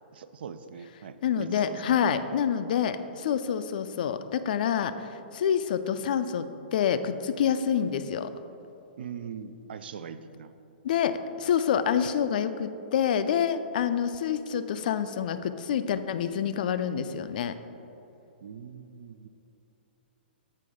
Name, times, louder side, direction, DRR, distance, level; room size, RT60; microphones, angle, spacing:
voice 1, 0.1-2.1 9.0-10.5 18.4-19.3, right 7 dB, 70° right, 11 dB, 0.4 m, -42 dB
voice 2, 1.2-8.3 10.8-17.6, left 8 dB, 55° left, 11 dB, 0.4 m, -27 dB
7.7 x 4.3 x 4.9 m, 2.9 s
hypercardioid pair, 155°, 6 cm